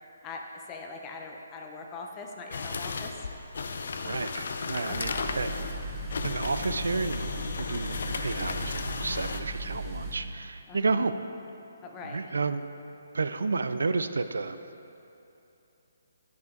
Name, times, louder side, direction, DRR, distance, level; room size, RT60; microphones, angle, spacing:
voice 1, 0.7-3.3 4.9-5.3 10.7-11.0 11.8-12.2, left 4 dB, 20° left, 2 dB, 0.7 m, -42 dB
sound 1, 2.5-9.4, left 4 dB, 65° left, 0.5 m, -35 dB
voice 2, 4.0-5.5 6.2-11.2 12.0-12.6 13.1-14.6, right 4 dB, 80° right, 11 dB, 0.3 m, -31 dB
sound 2, 4.9-10.2, right 1 dB, 10° right, 1.1 m, -37 dB
10.5 x 5.7 x 3.8 m, 2.9 s
hypercardioid pair, 150°, 0 cm